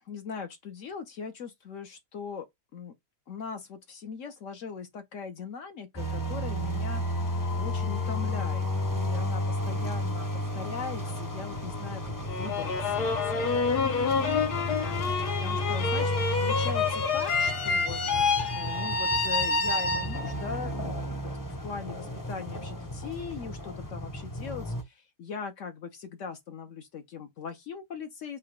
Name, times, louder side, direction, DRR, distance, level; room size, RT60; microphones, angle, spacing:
voice 1, 0.0-2.5 2.7-2.9 3.3-15.1 15.4-16.1 16.4-18.0 18.3-28.4, left 5 dB, 60° left, 0.9 m, -40 dB
sound 1, 6.0-24.8, left 1 dB, 20° left, 0.5 m, -33 dB
sound 2, 12.3-20.5, left 4 dB, 75° left, 1.5 m, -28 dB
3.9 x 2.2 x 4.3 m
omnidirectional pair, 1.7 m